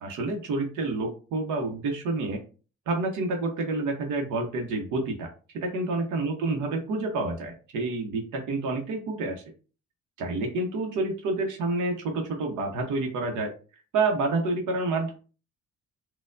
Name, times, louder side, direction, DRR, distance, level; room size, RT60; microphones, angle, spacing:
voice 1, 0.0-2.4 2.9-5.3 5.6-9.4 10.2-13.5 13.9-15.2, right 3 dB, 85° right, 2 dB, 0.8 m, -28 dB
4.2 x 2.2 x 2.5 m, 0.36 s
cardioid pair, 90°, 30 cm